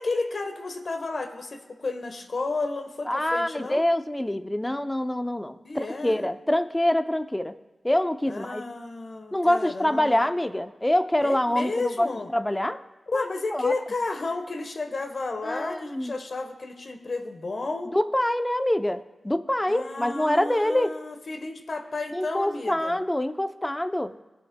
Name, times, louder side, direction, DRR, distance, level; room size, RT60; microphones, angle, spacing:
voice 1, 0.0-3.8 5.6-6.3 8.3-10.3 11.2-12.3 13.1-17.9 19.7-23.0, left 3 dB, 60° left, 6 dB, 1.1 m, -32 dB
voice 2, 3.1-7.6 7.8-8.6 9.3-12.8 13.1-13.3 13.5-13.7 15.4-16.1 17.9-20.9 22.1-24.1, left 1 dB, 15° left, 10 dB, 0.5 m, -25 dB
18.5 x 6.3 x 2.2 m, 1.2 s
cardioid pair, 45°, 0 cm